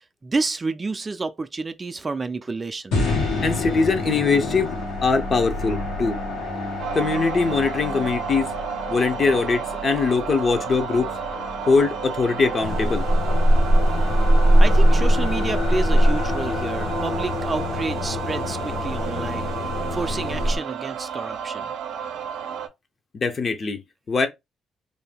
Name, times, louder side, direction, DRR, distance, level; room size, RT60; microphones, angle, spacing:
voice 1, 0.2-3.0 14.6-19.5 19.9-21.7, right 3 dB, 30° right, 0.4 m, -29 dB
sound 1, 2.9-19.1, left 2 dB, 90° left, 1.2 m, -31 dB
voice 2, 3.4-4.7 5.0-6.2 6.9-8.5 8.9-11.1 11.7-13.1 23.1-23.8 24.1-24.3, left 4 dB, 45° left, 0.6 m, -22 dB
sound 2, 6.8-22.7, right 8 dB, 90° right, 0.5 m, -32 dB
sound 3, 12.6-20.6, equal, 65° left, 1.0 m, -21 dB
2.6 x 2.1 x 3.3 m
cardioid pair, 90°, 0 cm